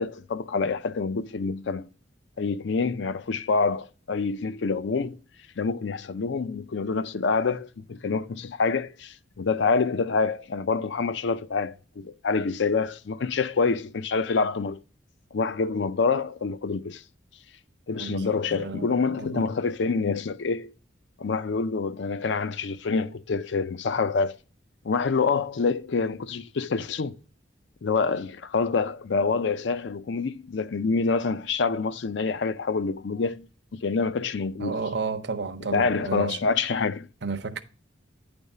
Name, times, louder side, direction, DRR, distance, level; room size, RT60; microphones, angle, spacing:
voice 1, 0.0-1.9 2.4-5.2 5.6-14.8 15.3-17.0 17.9-20.7 21.2-24.4 24.8-27.2 27.8-34.8 35.7-37.1, left 4 dB, 65° left, 0.5 m, -26 dB
voice 2, 18.0-19.5 34.6-36.4 37.2-37.6, right 4 dB, 60° right, 0.7 m, -32 dB
9.5 x 3.5 x 5.3 m
head